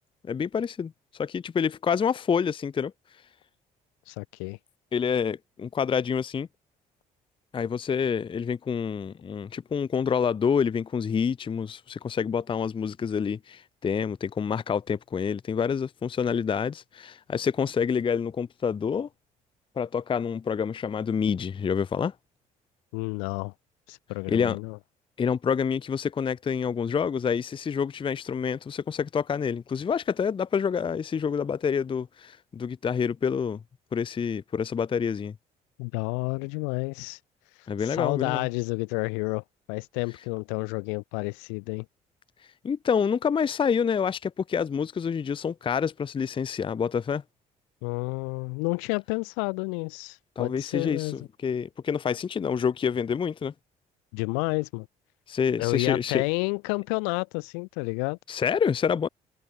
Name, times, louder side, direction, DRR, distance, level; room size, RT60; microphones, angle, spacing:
voice 1, 0.2-0.9 1.2-2.9 4.9-6.5 7.5-19.1 19.8-22.1 24.3-24.6 25.2-33.6 33.9-35.3 37.7-38.5 42.6-47.2 50.4-53.5 55.3-56.2 58.3-59.1, left 6 dB, 30° left, 0.5 m, -27 dB
voice 2, 4.1-4.6 22.9-23.5 23.9-24.8 35.8-37.2 37.8-41.8 47.8-51.2 54.1-54.9 55.6-58.2, left 40 dB or more, 80° left, 1.2 m, -30 dB
hypercardioid pair, 55°, 18 cm